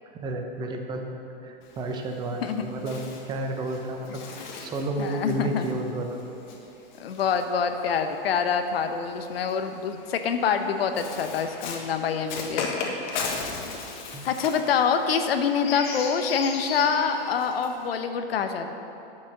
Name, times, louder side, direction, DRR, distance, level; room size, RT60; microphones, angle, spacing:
voice 1, 0.1-1.0 1.4-6.2 14.1-14.3, right 1 dB, 15° right, 3 dB, 0.7 m, -31 dB
Bird, 1.6-8.2 9.1-17.9, left 4 dB, 50° left, 1.4 m, -37 dB
voice 2, 5.0-5.7 7.0-12.9 14.2-18.7, left 6 dB, 80° left, 7 dB, 0.9 m, -26 dB
10.0 x 6.4 x 6.4 m, 2.8 s
hypercardioid pair, 150°, 29 cm